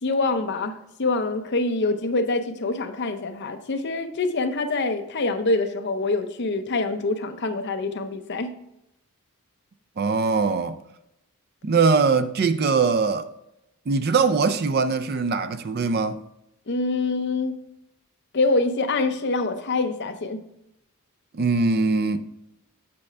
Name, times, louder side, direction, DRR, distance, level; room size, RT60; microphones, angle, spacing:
voice 1, 0.0-8.6 16.7-17.6 18.3-20.4, left 3 dB, 50° left, 0.7 m, -25 dB
voice 2, 10.0-10.8 11.6-13.3 13.9-16.2 21.3-22.2, right 4 dB, 45° right, 0.4 m, -21 dB
7.9 x 5.9 x 3.4 m
head